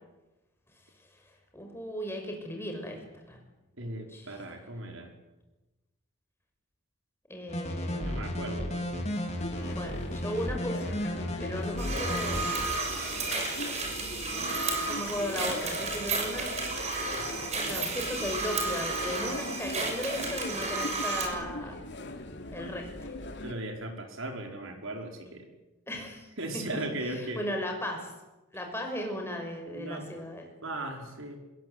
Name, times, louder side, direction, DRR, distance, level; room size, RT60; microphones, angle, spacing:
voice 1, 1.5-3.4 3.8-4.3 7.3-8.5 9.7-10.9 11.4-12.5 14.2-14.6 14.8-16.5 17.6-21.8 22.5-23.1 25.9-26.3 27.1-28.1 28.5-30.5, left 1 dB, 10° left, 2 dB, 6.1 m, -37 dB
voice 2, 3.8-5.1 7.9-9.1 13.8-13.9 23.4-25.5 26.4-27.5 29.7-30.1 30.6-31.4, right 1 dB, 70° right, 3 dB, 5.1 m, -37 dB
sound 1, 7.5-12.5, left 1 dB, 30° left, 3.7 m, -33 dB
sound 2, 9.4-23.5, left 2 dB, 55° left, 2.8 m, -40 dB
sound 3, 11.8-21.3, right 3 dB, 30° right, 6.3 m, -32 dB
27.5 x 21.5 x 8.3 m, 1.1 s
head